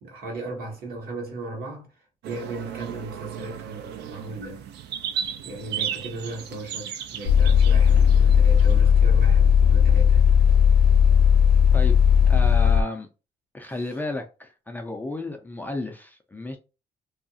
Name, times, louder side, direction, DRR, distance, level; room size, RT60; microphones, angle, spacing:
voice 1, 0.0-1.9 2.2-4.6 5.4-10.3 13.6-13.8, right 2 dB, 65° right, 1.1 m, -36 dB
sound 1, 2.2-8.8, right 8 dB, 85° right, 0.4 m, -35 dB
sound 2, 7.3-12.8, left 7 dB, 75° left, 0.5 m, -16 dB
voice 2, 12.3-13.1 13.5-16.6, left 2 dB, 10° left, 0.3 m, -32 dB
2.7 x 2.4 x 2.6 m
cardioid pair, 155°, 17 cm